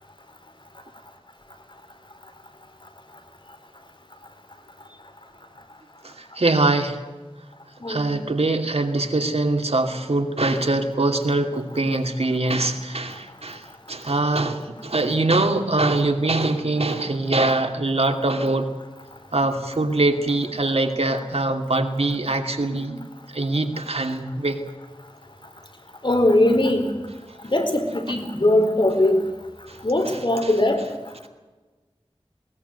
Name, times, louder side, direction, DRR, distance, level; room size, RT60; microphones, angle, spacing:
voice 1, 6.0-7.0 7.9-18.7 19.3-23.0 23.3-24.6 29.7-29.8 30.0-30.5, right 2 dB, 75° right, 6 dB, 2.5 m, -23 dB
voice 2, 26.0-26.9 27.4-29.2 29.8-30.8, left 1 dB, 50° left, 5 dB, 4.5 m, -20 dB
20.5 x 20.0 x 8.2 m, 1.2 s
wide cardioid pair, 55°, 10 cm